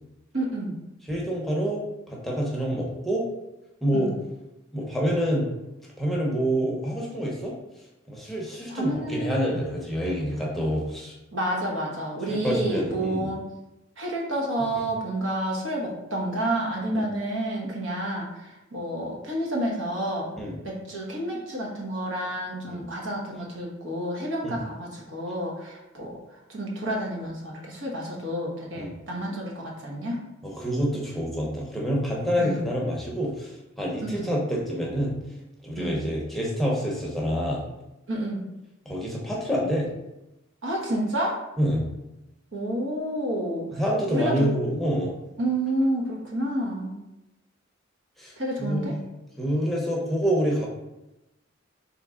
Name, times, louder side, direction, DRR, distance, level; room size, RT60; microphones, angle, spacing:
voice 1, 0.3-0.8 3.9-4.1 8.7-9.3 11.3-13.4 14.0-20.3 20.6-26.2 26.5-30.2 32.4-32.7 34.0-34.3 35.8-36.0 38.1-38.4 40.6-41.4 42.5-43.8 44.1-44.3 45.4-46.9 48.4-48.9, right 1 dB, 70° right, -2 dB, 1.1 m, -29 dB
voice 2, 1.1-1.8 2.1-3.3 3.8-4.1 4.7-5.5 6.0-7.5 8.1-11.2 12.3-13.3 20.4-20.6 22.7-22.8 24.4-24.6 28.8-28.9 30.4-35.1 35.6-37.6 38.9-39.9 41.6-41.9 43.7-45.1 48.2-48.3 48.6-48.9 49.4-50.7, equal, ahead, -4 dB, 0.7 m, -27 dB
3.7 x 3.0 x 3.7 m, 0.93 s
head